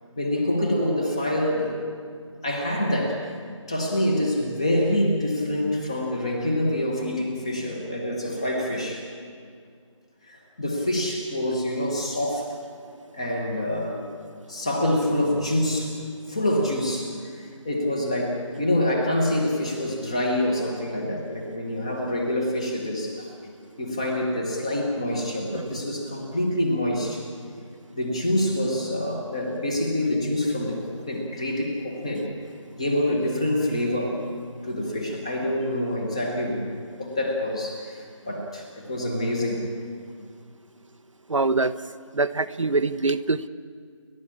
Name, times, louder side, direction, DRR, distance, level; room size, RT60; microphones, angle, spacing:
voice 1, 0.2-1.8 2.4-3.3 3.7-9.1 10.3-12.5 13.1-14.1 14.5-16.0 16.3-23.3 23.8-27.2 27.9-32.3 32.7-34.2 34.6-39.6, left 1 dB, 10° left, 1 dB, 1.2 m, -26 dB
voice 2, 41.3-41.7 42.1-43.5, right 3 dB, 70° right, 11 dB, 0.9 m, -23 dB
29.5 x 11.5 x 8.6 m, 2.2 s
figure-of-eight pair, 175°, 17 cm